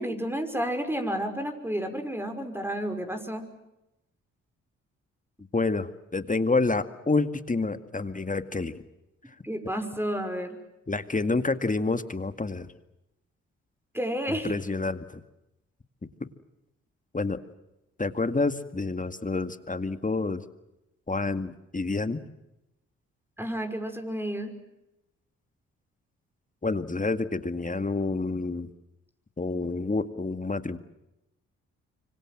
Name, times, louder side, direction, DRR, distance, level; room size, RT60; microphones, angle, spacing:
voice 1, 0.0-3.4 9.4-10.6 13.9-14.5 23.4-24.5, equal, 5° right, 6 dB, 5.6 m, -31 dB
voice 2, 5.5-8.8 10.9-12.7 14.4-15.2 16.2-16.3 17.1-17.4 18.0-20.4 21.1-22.2 26.6-28.7 29.4-30.8, left 3 dB, 25° left, 11 dB, 2.0 m, -28 dB
26.0 x 25.0 x 7.7 m, 0.90 s
supercardioid pair, 45°, 32 cm